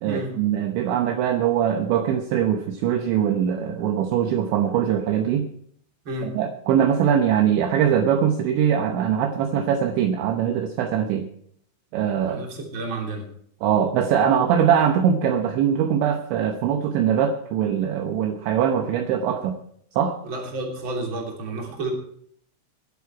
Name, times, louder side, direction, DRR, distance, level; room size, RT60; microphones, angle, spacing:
voice 1, 0.0-5.5 6.2-11.3 11.9-12.4 13.6-19.6 20.0-20.2, right 9 dB, 75° right, 6 dB, 2.9 m, -22 dB
voice 2, 12.1-13.2 20.2-21.9, right 2 dB, 30° right, 0 dB, 3.0 m, -31 dB
21.5 x 8.1 x 4.7 m, 0.65 s
omnidirectional pair, 5.9 m